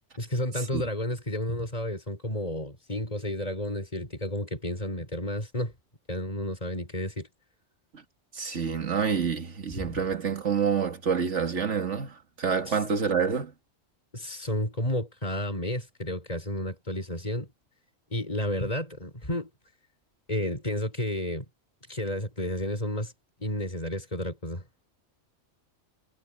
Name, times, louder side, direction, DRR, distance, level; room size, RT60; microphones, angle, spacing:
voice 1, 0.2-5.7 6.1-7.3 9.8-9.9 12.7-12.8 14.1-17.5 18.1-19.5 20.3-21.4 21.9-23.1 23.4-24.6, left 1 dB, 35° left, 6.6 m, -31 dB
voice 2, 8.3-13.5, right 6 dB, 80° right, 2.2 m, -27 dB
omnidirectional pair, 1.2 m